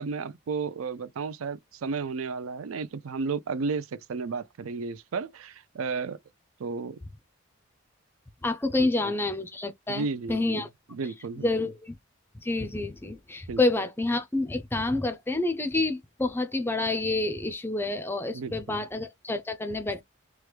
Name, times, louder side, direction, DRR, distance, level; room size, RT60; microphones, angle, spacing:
voice 1, 0.0-6.2 6.6-7.0 8.8-9.1 9.9-10.7 10.9-11.5 13.5-13.6 18.3-18.8, right 4 dB, 80° right, 0.4 m, -33 dB
voice 2, 8.4-10.7 11.4-11.9 12.4-20.0, left 2 dB, 10° left, 0.4 m, -28 dB
3.1 x 2.2 x 3.2 m
head